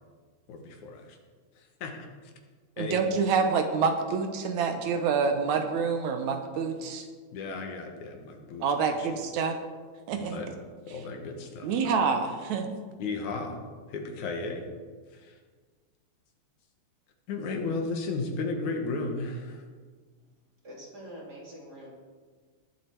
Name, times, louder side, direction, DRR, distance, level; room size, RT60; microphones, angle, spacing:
voice 1, 0.5-1.2 1.6-2.0 2.8-3.1 7.3-9.2 10.1-10.5 10.9-11.7 13.0-13.6 13.9-14.6 15.1-15.4 17.3-19.6, left 3 dB, 80° left, 3 dB, 2.8 m, -34 dB
voice 2, 2.8-7.1 8.6-9.6 10.1-10.4 11.6-12.7, right 5 dB, 75° right, 6 dB, 2.3 m, -27 dB
voice 3, 20.6-21.9, equal, 35° right, -3 dB, 3.2 m, -45 dB
19.5 x 7.8 x 4.6 m, 1.5 s
omnidirectional pair, 3.4 m